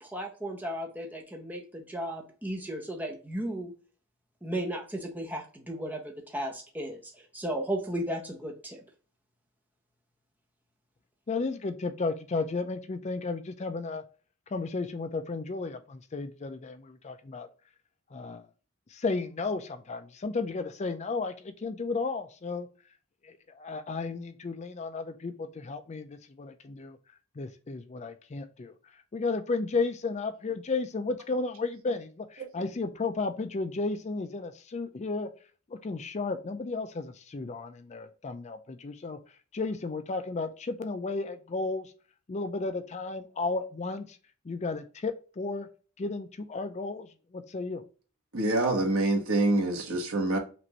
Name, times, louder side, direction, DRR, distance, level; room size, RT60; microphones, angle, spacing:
voice 1, 0.0-3.7 4.4-8.8, right 1 dB, 10° right, 0.8 m, -35 dB
voice 2, 11.3-14.0 14.5-17.5 18.1-18.4 18.9-22.7 23.2-27.0 27.4-28.7 29.1-35.3 35.8-39.2 39.5-41.9 42.3-44.1 44.5-45.7 46.0-47.1 47.3-47.8, left 3 dB, 30° left, 0.4 m, -33 dB
voice 3, 48.3-50.4, right 2 dB, 75° right, 1.3 m, -26 dB
5.9 x 2.6 x 3.0 m
head